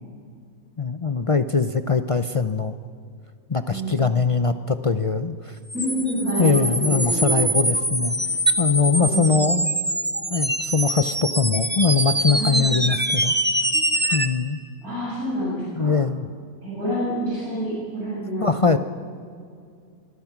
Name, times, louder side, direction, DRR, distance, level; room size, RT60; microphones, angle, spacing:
voice 1, 0.8-2.8 3.5-5.6 6.4-8.2 8.6-9.7 10.3-13.3 14.1-14.6 15.8-16.3 18.4-18.8, left 5 dB, 45° left, 10 dB, 0.4 m, -22 dB
voice 2, 3.7-4.0 5.7-7.5 9.0-9.6 12.3-12.7 14.8-15.9 16.6-18.8, equal, 85° right, -8 dB, 8.1 m, -28 dB
sound 1, 5.7-14.3, right 1 dB, 10° right, 0.8 m, -24 dB
25.5 x 23.0 x 6.0 m, 2.3 s
omnidirectional pair, 1.5 m